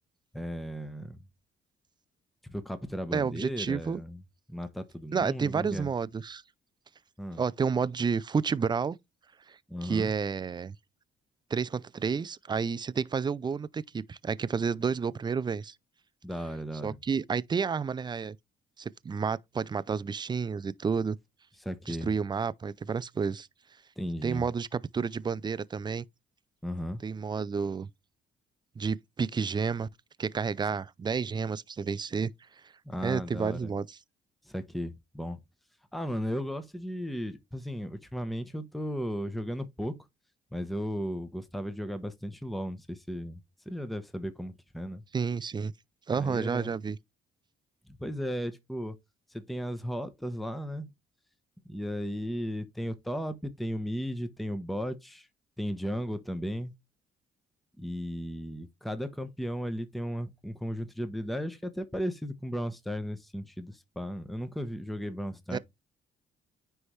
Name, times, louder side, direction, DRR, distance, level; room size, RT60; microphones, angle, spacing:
voice 1, 0.3-1.2 2.4-4.2 4.5-5.9 7.2-7.4 9.7-10.1 16.2-17.0 21.6-22.1 24.0-24.5 26.6-27.0 32.8-33.7 34.5-35.4 35.9-39.9 40.5-43.4 43.7-45.0 46.1-46.8 48.0-49.0 49.3-50.9 51.6-55.3 55.6-56.7 57.8-65.6, equal, ahead, 1.0 m, -35 dB
voice 2, 3.1-4.0 5.1-6.4 7.4-9.0 9.5-10.7 11.5-15.7 16.8-18.4 18.8-21.2 21.9-23.5 24.2-26.0 27.0-27.9 28.8-29.9 30.2-32.3 33.0-34.0 45.1-45.7 46.1-47.0 65.5-65.6, right 5 dB, 20° right, 0.4 m, -30 dB
9.6 x 3.4 x 3.2 m
cardioid pair, 90°, 20 cm